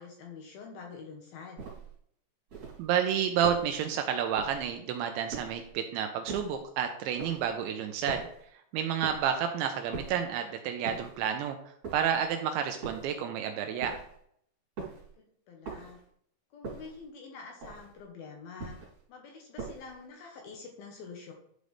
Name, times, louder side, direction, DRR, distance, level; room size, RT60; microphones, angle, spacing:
voice 1, 0.0-1.6 15.2-16.0 16.5-18.8 19.1-21.3, left 5 dB, 75° left, 1 dB, 2.3 m, -46 dB
sound 1, 1.6-2.0 2.5-2.9 3.4-3.8 4.4-4.8 5.3-5.7 6.3-6.6 7.2-7.5 8.1-8.5 9.0-9.4 9.9-10.3 10.8-11.3 11.8-12.3 12.8-13.2 13.8-14.2 14.8-15.1 15.6-16.1 16.6-17.0 17.6-18.0 18.6-19.0 19.6-20.0, right 4 dB, 35° right, 4.3 m, -42 dB
voice 2, 2.8-8.3 8.5-14.0, right 8 dB, 80° right, 6 dB, 2.9 m, -30 dB
11.5 x 5.3 x 3.3 m, 0.67 s
omnidirectional pair, 5.6 m